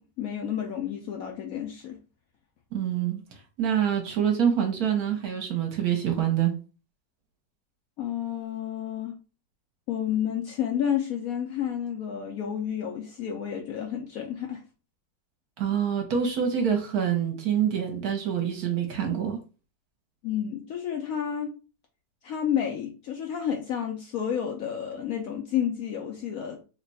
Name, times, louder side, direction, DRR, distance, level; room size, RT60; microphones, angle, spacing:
voice 1, 0.0-2.0 8.0-9.2 9.9-14.6 20.2-21.5 22.2-26.6, left 9 dB, 70° left, 0.8 m, -30 dB
voice 2, 2.7-3.2 3.6-6.5 15.6-19.4, right 8 dB, 65° right, 1.2 m, -26 dB
3.1 x 2.2 x 3.9 m
omnidirectional pair, 1.9 m